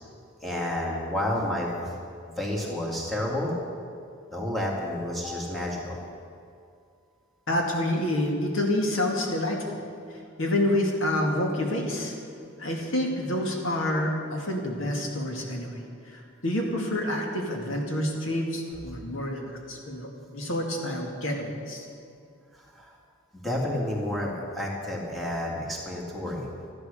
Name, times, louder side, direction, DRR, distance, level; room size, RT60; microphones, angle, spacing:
voice 1, 0.4-1.7 2.3-3.5 4.3-6.0 22.5-22.9 23.3-26.5, left 1 dB, ahead, -4 dB, 2.2 m, -30 dB
voice 2, 7.5-9.6 10.4-12.1 12.6-15.8 16.1-21.8, left 1 dB, 90° left, 0 dB, 2.3 m, -28 dB
13.5 x 11.0 x 6.8 m, 2.4 s
head